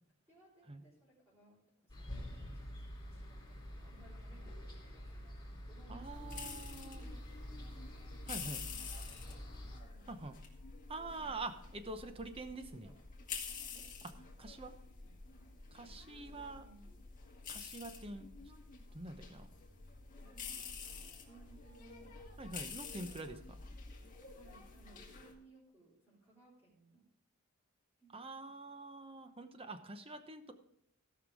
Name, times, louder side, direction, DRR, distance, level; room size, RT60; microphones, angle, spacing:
voice 1, 0.3-6.4 6.8-7.3 7.6-7.8 8.5-9.4 9.8-10.3 11.1-11.4 12.6-13.0 13.7-13.9 15.0-15.2 15.7-16.8 20.2-22.2 23.6-23.7 24.3-27.1 28.0-28.7, right 3 dB, 5° right, -10 dB, 3.6 m, -64 dB
sound 1, 1.9-9.8, equal, 20° left, 3.3 m, -47 dB
voice 2, 5.9-7.0 8.3-8.6 10.1-10.4 10.9-12.9 14.4-14.7 15.7-16.6 17.5-18.3 18.9-19.5 22.4-23.4 28.1-30.5, right 2 dB, 25° right, 9 dB, 0.8 m, -45 dB
sound 2, 6.0-25.3, left 5 dB, 35° left, 1.9 m, -49 dB
16.0 x 5.8 x 4.9 m, 0.77 s
head